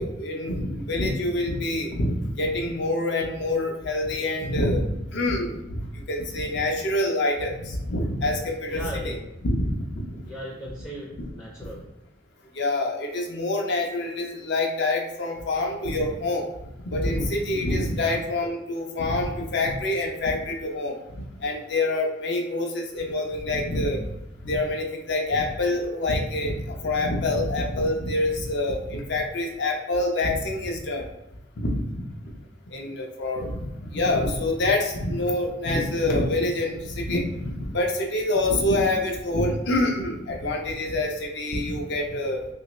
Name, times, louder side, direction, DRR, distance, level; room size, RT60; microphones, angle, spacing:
voice 1, 0.0-5.8 6.1-10.2 11.2-11.3 12.5-16.5 16.8-21.0 21.4-24.1 24.4-31.1 31.6-32.0 32.7-42.4, left 2 dB, 60° left, 2 dB, 0.6 m, -26 dB
voice 2, 8.7-9.2 10.2-11.8 18.0-18.1, equal, 15° left, -4 dB, 0.5 m, -37 dB
3.0 x 2.6 x 3.0 m, 0.88 s
head